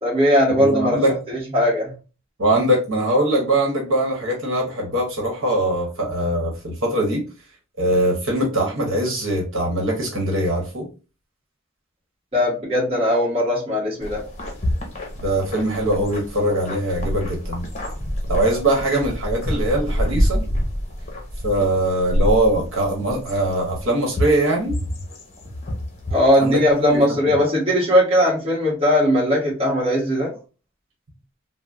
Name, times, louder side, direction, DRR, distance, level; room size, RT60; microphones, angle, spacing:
voice 1, 0.0-1.9 12.3-14.2 26.1-30.3, equal, 30° right, 1.2 m, -19 dB
voice 2, 0.6-1.2 2.4-7.2 7.8-10.9 15.2-17.6 18.3-20.4 21.4-24.7 26.4-26.6 27.3-27.4, right 1 dB, 70° right, 1.1 m, -21 dB
sound 1, 14.0-27.0, equal, 30° left, 0.7 m, -27 dB
3.4 x 2.1 x 2.5 m
head